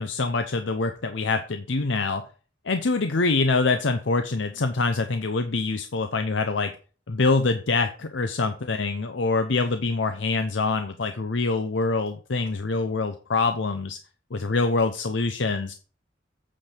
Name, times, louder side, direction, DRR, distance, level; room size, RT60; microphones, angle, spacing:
voice 1, 0.0-2.2 2.7-6.7 7.1-14.0 14.3-15.7, left 3 dB, 70° left, 8 dB, 0.7 m, -25 dB
8.6 x 5.3 x 5.7 m, 0.37 s
head